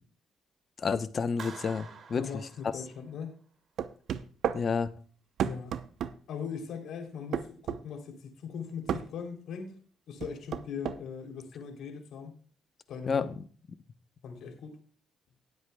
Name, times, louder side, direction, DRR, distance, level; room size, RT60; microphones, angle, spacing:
voice 1, 0.8-2.3 4.5-4.9 13.1-13.3, left 5 dB, 45° left, 12 dB, 0.8 m, -30 dB
Clapping, 1.4-3.3, right 5 dB, 55° right, 2.6 m, -47 dB
voice 2, 2.1-3.3 5.4-5.8 6.3-9.7 10.1-12.3 12.9-13.2 14.2-14.8, left 6 dB, 75° left, 4 dB, 3.2 m, -40 dB
sound 1, 3.8-4.6 5.4-6.2 7.3-7.8 8.9-9.1 10.2-11.0, right 9 dB, 75° right, 0.7 m, -31 dB
19.0 x 8.1 x 2.3 m, 0.43 s
cardioid pair, 90°, 0 cm